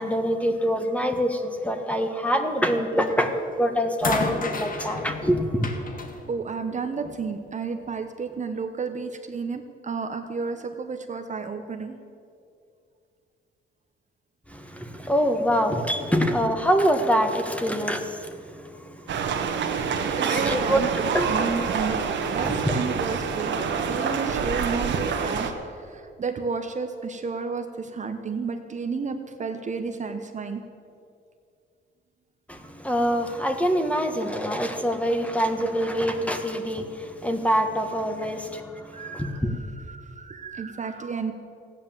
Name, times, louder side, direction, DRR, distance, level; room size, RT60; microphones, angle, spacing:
voice 1, 0.0-5.7 14.5-21.4 22.4-22.8 32.5-39.6, equal, 5° left, 6 dB, 1.5 m, -25 dB
sound 1, 3.1-3.4 4.0-7.3 8.3-8.4, left 3 dB, 45° left, 1.7 m, -32 dB
voice 2, 6.3-12.0 15.0-15.1 16.1-16.3 20.1-22.0 22.3-23.6 23.9-30.6 38.2-38.4 38.9-41.3, right 5 dB, 35° right, 7 dB, 1.0 m, -32 dB
sound 2, 19.1-25.5, right 6 dB, 70° right, 1.5 m, -27 dB
14.5 x 9.7 x 7.5 m, 2.4 s
cardioid pair, 90°, 20 cm